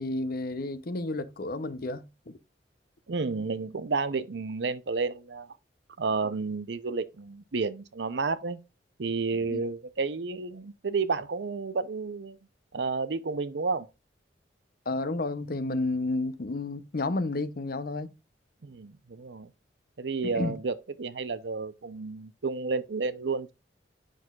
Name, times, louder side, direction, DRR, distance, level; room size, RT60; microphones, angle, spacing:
voice 1, 0.0-2.4 9.5-9.6 14.9-18.1 20.3-20.5, left 2 dB, 55° left, 0.7 m, -31 dB
voice 2, 3.1-5.6 6.0-8.6 9.0-12.4 12.7-13.9 18.6-19.5 20.0-23.5, right 4 dB, 70° right, 0.6 m, -31 dB
8.1 x 6.2 x 2.4 m
head